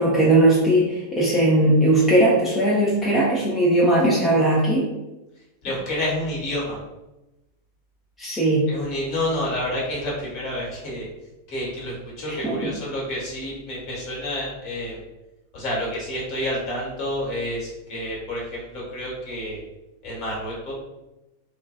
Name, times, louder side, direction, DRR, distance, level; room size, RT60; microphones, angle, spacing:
voice 1, 0.0-4.8 8.2-8.7 12.3-12.7, right 1 dB, 10° left, -6 dB, 0.6 m, -19 dB
voice 2, 5.6-6.8 8.7-11.1 11.5-15.0 15.5-19.6 20.0-20.7, left 1 dB, 40° left, -5 dB, 1.2 m, -29 dB
2.5 x 2.2 x 2.3 m, 0.98 s
figure-of-eight pair, 90°, 0 cm